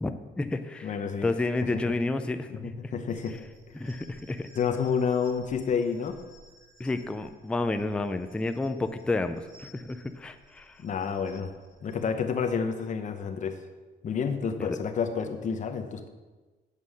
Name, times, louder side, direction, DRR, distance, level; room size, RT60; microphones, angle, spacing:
voice 1, 0.0-0.9 1.2-2.8 3.7-4.5 6.8-10.8 14.6-14.8, left 2 dB, 5° left, 9 dB, 0.3 m, -30 dB
voice 2, 0.8-1.3 2.5-3.4 4.6-6.2 10.8-11.5 11.8-13.6 14.0-16.1, left 6 dB, 40° left, 6 dB, 0.8 m, -29 dB
sound 1, 3.1-12.0, right 1 dB, 85° right, 1.7 m, -56 dB
8.3 x 5.5 x 6.3 m, 1.3 s
cardioid pair, 150°, 20 cm